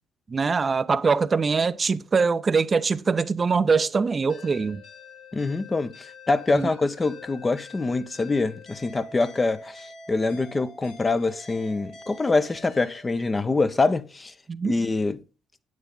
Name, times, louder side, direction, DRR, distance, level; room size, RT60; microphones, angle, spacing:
voice 1, 0.3-4.8 6.5-6.7 14.5-14.7, right 5 dB, 35° right, 0.6 m, -23 dB
sound 1, 4.3-13.0, left 3 dB, 80° left, 7.0 m, -46 dB
voice 2, 5.3-14.3 14.6-15.2, left 3 dB, 25° left, 0.8 m, -25 dB
9.3 x 8.8 x 3.7 m
hypercardioid pair, 55°, 0 cm